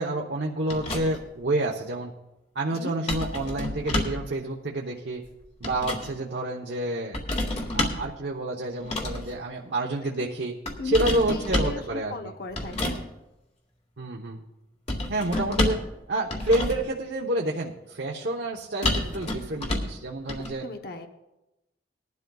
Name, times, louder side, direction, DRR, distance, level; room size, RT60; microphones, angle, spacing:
voice 1, 0.0-2.1 2.5-5.2 5.6-7.2 7.7-10.6 10.8-12.3 14.0-14.4 15.1-15.8 16.1-20.7, right 2 dB, 75° right, -1 dB, 1.0 m, -29 dB
sound 1, 0.7-1.3 3.1-4.3 5.3-6.1 7.1-8.1 8.8-9.3 10.7-11.8 12.5-13.0 14.9-15.9 16.3-16.9 18.8-20.0 20.3-20.5, left 1 dB, 40° left, 1.9 m, -29 dB
voice 2, 10.8-11.8 12.1-13.1 15.3-15.4 20.6-21.1, left 2 dB, 60° left, 5 dB, 1.0 m, -37 dB
19.5 x 12.0 x 2.4 m, 0.97 s
head